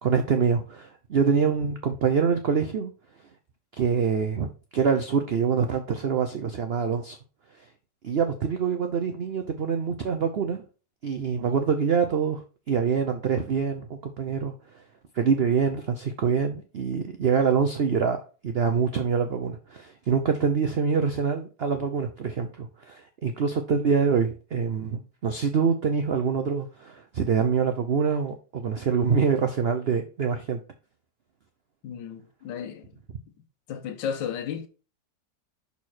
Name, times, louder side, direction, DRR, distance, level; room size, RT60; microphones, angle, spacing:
voice 1, 0.0-2.9 3.7-7.2 8.0-10.6 11.0-14.5 15.1-30.6, right 6 dB, 85° right, 0.5 m, -25 dB
voice 2, 31.8-32.8 33.7-34.7, left 8 dB, 90° left, 1.5 m, -33 dB
6.3 x 4.2 x 4.3 m
omnidirectional pair, 1.9 m